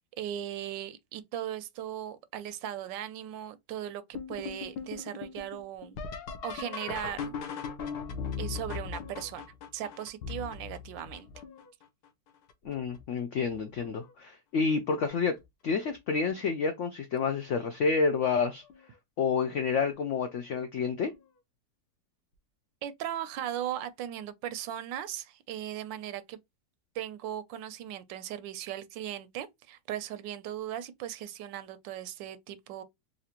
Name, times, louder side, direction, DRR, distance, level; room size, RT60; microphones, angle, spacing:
voice 1, 0.2-6.0 6.4-7.4 8.4-11.3 22.8-26.4 26.9-32.8, right 11 dB, 85° right, 1.3 m, -38 dB
sound 1, 4.1-11.8 12.5-13.0 13.5-14.1 15.4-15.5 16.2-16.5 18.7-18.8 21.1-21.2, left 6 dB, 70° left, 1.2 m, -39 dB
voice 2, 12.6-15.4 15.6-18.6 19.2-21.1, left 5 dB, 85° left, 0.6 m, -29 dB
4.1 x 2.6 x 2.9 m
omnidirectional pair, 1.9 m